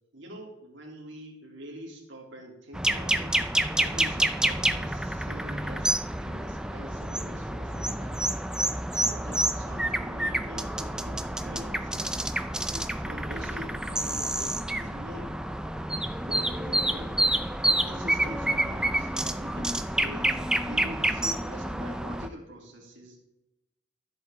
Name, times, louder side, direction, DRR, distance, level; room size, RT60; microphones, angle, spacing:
voice 1, 0.1-8.3 8.9-12.2 12.7-15.4 16.2-17.2 17.7-23.2, equal, 70° right, -1 dB, 3.1 m, -44 dB
sound 1, 2.7-22.3, right 1 dB, 5° right, 0.4 m, -28 dB
13.5 x 8.1 x 3.7 m, 0.89 s
head